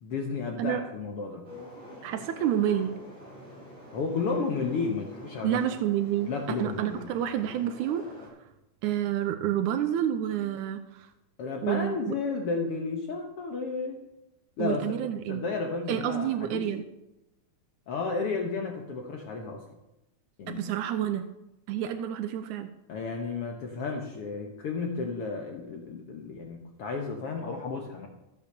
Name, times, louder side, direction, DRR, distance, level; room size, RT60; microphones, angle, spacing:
voice 1, 0.0-1.5 3.9-5.6 6.3-7.1 11.4-14.0 14.6-15.0 15.3-16.7 17.9-19.6 20.4-20.6 22.9-28.1, left 4 dB, 55° left, 2 dB, 2.0 m, -32 dB
sound 1, 1.4-8.3, equal, 15° right, 6.1 m, -47 dB
voice 2, 2.0-3.0 5.4-8.0 8.8-11.1 11.6-12.1 14.6-15.4 15.9-16.8 20.5-21.3 21.7-22.7, right 10 dB, 85° right, 8 dB, 2.2 m, -29 dB
15.0 x 8.5 x 6.8 m, 0.90 s
omnidirectional pair, 3.4 m